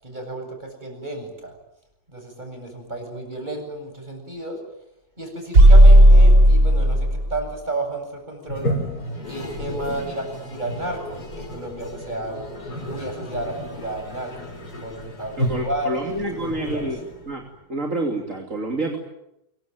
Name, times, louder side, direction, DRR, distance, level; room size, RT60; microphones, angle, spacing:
voice 1, 0.0-1.5 2.1-4.6 5.2-8.7 9.3-12.5 12.8-16.8, right 2 dB, 30° right, 4 dB, 8.4 m, -32 dB
sound 1, 5.5-7.4, equal, 90° right, 4.1 m, -11 dB
Toilet flush, 8.4-17.5, equal, 90° left, 4.3 m, -32 dB
voice 2, 15.4-17.4 17.7-19.0, right 2 dB, 55° right, 2 dB, 3.4 m, -28 dB
25.5 x 23.5 x 9.2 m, 0.85 s
omnidirectional pair, 1.7 m